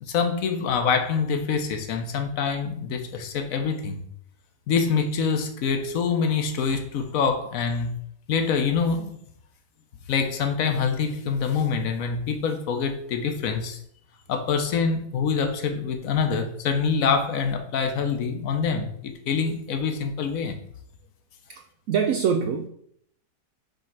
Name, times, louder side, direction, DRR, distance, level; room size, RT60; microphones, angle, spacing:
voice 1, 0.0-4.0 4.7-7.9 8.3-9.2 10.1-13.8 14.3-20.6, left 5 dB, 60° left, 1.2 m, -25 dB
voice 2, 21.5-22.7, right 7 dB, 70° right, 0.9 m, -25 dB
5.3 x 3.8 x 5.8 m
omnidirectional pair, 1.7 m